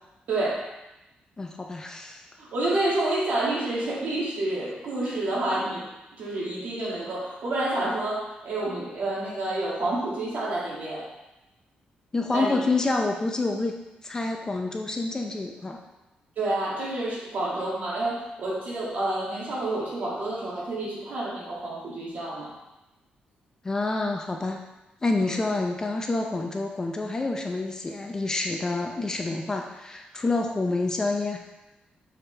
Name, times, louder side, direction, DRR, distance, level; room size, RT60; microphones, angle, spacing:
voice 1, 0.3-0.7 2.4-5.8 6.2-11.0 12.3-12.6 16.4-22.5 25.2-25.4, right 2 dB, 60° right, -5 dB, 2.0 m, -29 dB
voice 2, 1.4-2.2 12.1-13.8 14.0-15.8 23.6-24.6 25.0-31.4, left 3 dB, 20° left, 3 dB, 0.5 m, -28 dB
6.5 x 4.8 x 3.2 m, 0.98 s
wide cardioid pair, 145°, 3 cm